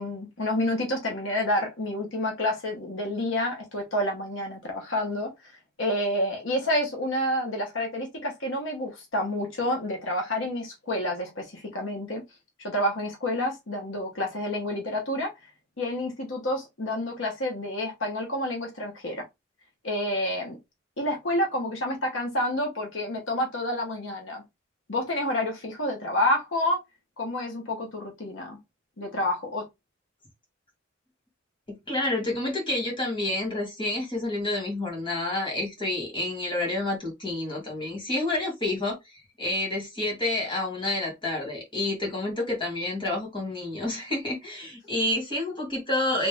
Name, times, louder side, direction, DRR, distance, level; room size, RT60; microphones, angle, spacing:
voice 1, 0.0-5.3 5.8-12.2 12.6-15.3 15.8-19.2 19.8-20.6 21.0-24.4 24.9-26.8 27.2-28.6 29.0-29.6, left 1 dB, 85° left, 1.2 m, -29 dB
voice 2, 31.9-46.3, left 2 dB, 25° left, 1.9 m, -29 dB
3.4 x 2.6 x 3.4 m
head